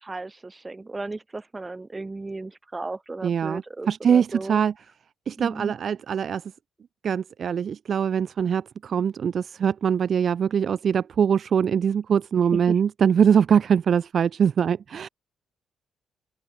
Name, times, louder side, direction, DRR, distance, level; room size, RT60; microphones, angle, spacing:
voice 1, 0.0-4.6 5.4-5.7 12.5-12.8, right 3 dB, 20° right, 4.0 m, -35 dB
voice 2, 3.2-4.7 5.3-6.4 7.0-15.1, right 7 dB, 55° right, 0.7 m, -22 dB
open air
cardioid pair, 90°, 0 cm